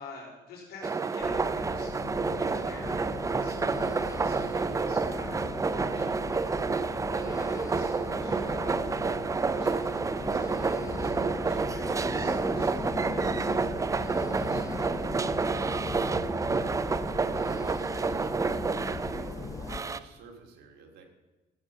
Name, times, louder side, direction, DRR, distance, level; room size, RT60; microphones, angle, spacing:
voice 1, 0.0-2.1 2.4-6.5 7.1-9.0 9.5-14.9, left 3 dB, 70° left, -3 dB, 4.8 m, -49 dB
sound 1, 0.8-20.0, right 4 dB, 20° right, 0.5 m, -29 dB
sound 2, 1.2-19.8, left 4 dB, 20° left, 0.7 m, -38 dB
voice 2, 16.5-18.6 19.0-21.1, right 3 dB, 75° right, 3 dB, 2.4 m, -48 dB
15.5 x 7.4 x 5.7 m, 1.2 s
cardioid pair, 110°, 17 cm